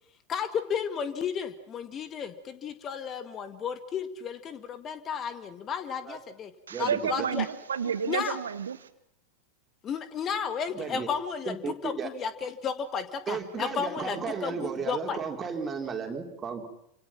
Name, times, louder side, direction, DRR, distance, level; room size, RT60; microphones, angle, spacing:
voice 1, 0.3-6.5 6.8-7.5 8.1-8.4 9.8-11.5 11.8-15.2, left 7 dB, 25° left, 11 dB, 1.9 m, -33 dB
voice 2, 6.7-8.9, right 7 dB, 70° right, 12 dB, 1.3 m, -30 dB
voice 3, 10.7-11.1 11.5-12.1 13.3-16.7, right 5 dB, 20° right, 3 dB, 4.1 m, -34 dB
28.5 x 26.5 x 6.0 m, 0.72 s
figure-of-eight pair, 90°, 0 cm